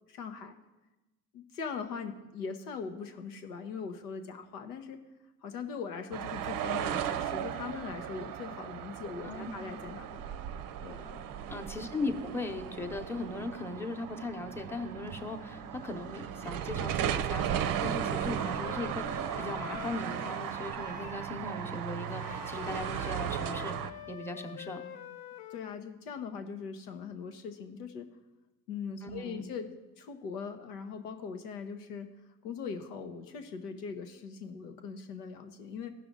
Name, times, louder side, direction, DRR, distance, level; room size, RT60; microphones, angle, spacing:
voice 1, 0.1-0.5 1.3-5.0 5.4-10.3 10.8-11.2 25.5-28.1 28.7-29.7 30.0-32.1 32.4-35.9, left 5 dB, 85° left, 7 dB, 1.0 m, -41 dB
sound 1, 6.1-23.9, right 10 dB, 45° right, 0.6 m, -36 dB
voice 2, 11.5-24.9 29.0-29.4, left 2 dB, 5° left, 4 dB, 1.0 m, -38 dB
Wind instrument woodwind instrument, 17.8-21.3 22.1-25.8, left 10 dB, 50° left, 0.7 m, -46 dB
15.0 x 5.9 x 3.9 m, 1.1 s
hypercardioid pair, 60°, 46 cm